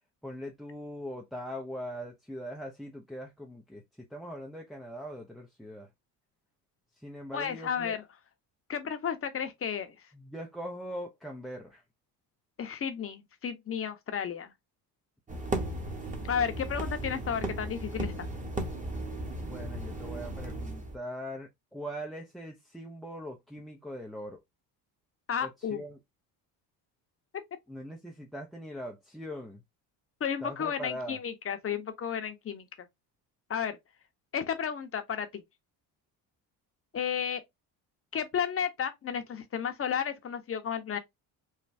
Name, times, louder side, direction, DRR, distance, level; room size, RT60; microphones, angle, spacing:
voice 1, 0.2-5.9 6.9-8.0 10.1-11.8 19.4-24.4 25.4-26.0 27.7-29.6 30.4-31.2, equal, ahead, 0.3 m, -41 dB
voice 2, 7.3-8.0 8.7-10.0 12.6-14.5 16.3-18.3 25.3-25.8 30.2-32.9 33.5-33.8 34.3-35.4 36.9-37.4 38.1-41.0, left 7 dB, 30° left, 0.7 m, -33 dB
sound 1, 15.3-21.0, right 1 dB, 15° right, 0.9 m, -36 dB
3.2 x 2.2 x 2.5 m
supercardioid pair, 70°, 46 cm